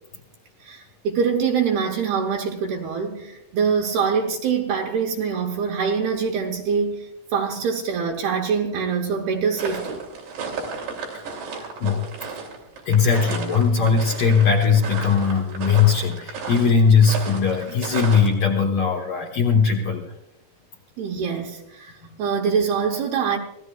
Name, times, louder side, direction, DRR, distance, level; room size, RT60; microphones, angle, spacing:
voice 1, 0.6-10.1 21.0-23.4, right 6 dB, 80° right, 2.3 m, -24 dB
sound 1, 9.6-18.3, right 4 dB, 55° right, 4.8 m, -33 dB
voice 2, 11.6-12.1 12.9-20.1 22.1-22.2, left 6 dB, 80° left, 1.9 m, -19 dB
26.0 x 16.5 x 2.4 m
omnidirectional pair, 6.0 m